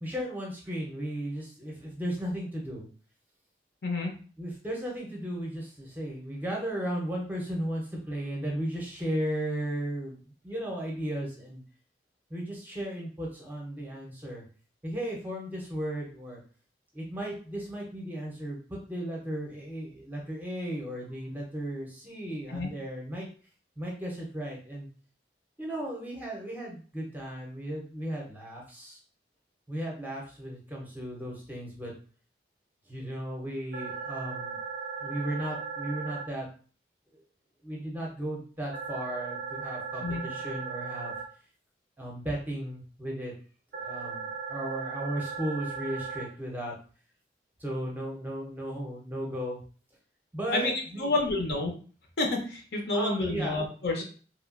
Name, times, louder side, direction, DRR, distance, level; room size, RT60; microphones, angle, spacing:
voice 1, 0.0-2.9 4.4-10.2 10.4-11.6 12.3-14.4 14.8-16.4 16.9-23.3 23.8-24.9 25.6-29.0 29.7-31.9 32.9-34.6 35.0-36.5 37.6-41.1 42.0-43.3 43.7-46.7 47.6-49.6 50.3-51.1 52.9-53.6, right 1 dB, 10° right, -2 dB, 0.6 m, -35 dB
voice 2, 3.8-4.1 22.5-22.7 40.0-40.3 50.5-51.8 52.2-54.0, left 2 dB, 65° left, 1 dB, 0.7 m, -29 dB
sound 1, 33.7-36.2 38.7-41.2 43.7-46.2, right 5 dB, 60° right, 0.4 m, -37 dB
3.0 x 2.3 x 2.4 m, 0.40 s
head